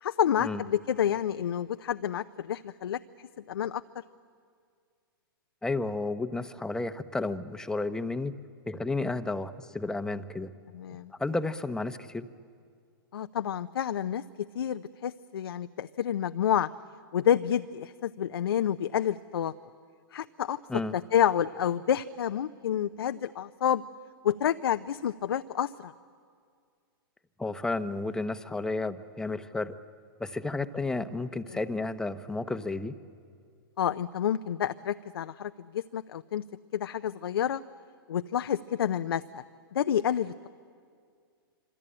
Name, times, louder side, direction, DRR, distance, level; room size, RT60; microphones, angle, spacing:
voice 1, 0.0-3.0 3.5-3.8 10.7-11.1 13.1-16.7 17.1-19.5 20.1-20.6 20.9-23.8 24.2-25.9 31.5-31.6 33.8-36.4 36.7-37.6 38.1-39.4 39.7-40.5, left 9 dB, 75° left, 10 dB, 0.6 m, -29 dB
voice 2, 5.6-10.5 11.2-12.3 20.7-21.0 27.4-29.8 30.2-33.0, left 3 dB, 5° left, 11 dB, 0.9 m, -32 dB
26.0 x 25.5 x 8.9 m, 2.2 s
hypercardioid pair, 125°, 13 cm